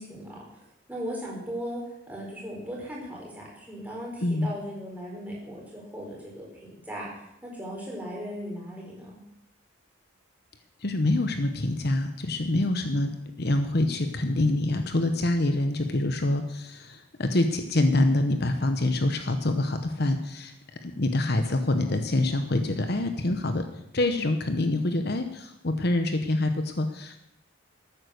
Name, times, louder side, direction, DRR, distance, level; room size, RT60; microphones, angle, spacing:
voice 1, 0.0-9.2, equal, 10° right, -4 dB, 4.5 m, -38 dB
voice 2, 10.8-20.5 20.8-23.6 23.9-27.2, left 2 dB, 55° left, 7 dB, 1.0 m, -26 dB
13.5 x 9.2 x 6.6 m, 0.83 s
head